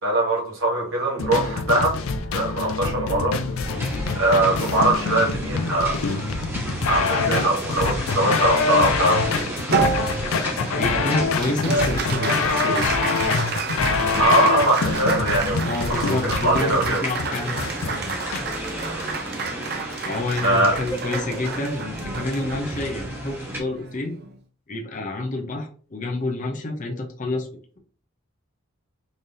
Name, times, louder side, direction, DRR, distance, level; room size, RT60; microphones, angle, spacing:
voice 1, 0.0-2.0 2.3-3.4 4.1-6.1 6.9-9.8 14.1-17.0 18.9-19.1 20.4-20.7, right 1 dB, 70° right, -4 dB, 1.2 m, -22 dB
sound 1, 1.2-18.4, left 4 dB, 80° left, 0.4 m, -25 dB
sound 2, 3.6-23.6, right 1 dB, 10° right, 0.9 m, -34 dB
Applause, 9.7-24.4, right 4 dB, 50° right, 0.6 m, -30 dB
voice 2, 10.7-12.9 15.7-18.2 20.0-24.2 24.7-27.5, left 2 dB, 40° left, 2 dB, 0.6 m, -28 dB
3.9 x 3.3 x 2.7 m, 0.42 s
head